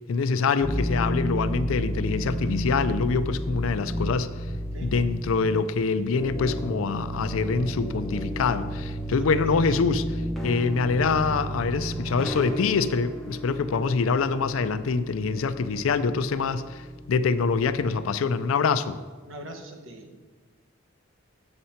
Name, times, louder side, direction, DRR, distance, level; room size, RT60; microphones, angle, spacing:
voice 1, 0.1-4.3 4.8-19.0, left 4 dB, 80° left, 12 dB, 0.4 m, -25 dB
sound 1, 0.6-18.0, right 1 dB, ahead, 0.8 m, -33 dB
voice 2, 9.2-9.8 19.2-20.2, right 1 dB, 70° right, 3 dB, 1.0 m, -42 dB
7.7 x 6.6 x 4.2 m, 1.4 s
head